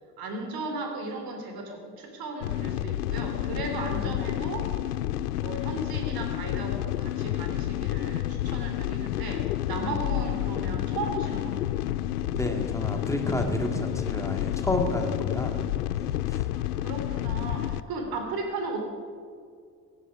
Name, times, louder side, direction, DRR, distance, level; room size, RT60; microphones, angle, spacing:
voice 1, 0.2-4.7 5.4-11.7 15.5-18.8, right 2 dB, 50° right, 3 dB, 3.5 m, -36 dB
sound 1, 2.4-17.8, left 13 dB, 80° left, 0.6 m, -30 dB
voice 2, 12.3-15.7 15.9-16.5, left 1 dB, 5° left, 3 dB, 2.1 m, -30 dB
18.0 x 13.0 x 4.9 m, 2.2 s
figure-of-eight pair, 60°, 45 cm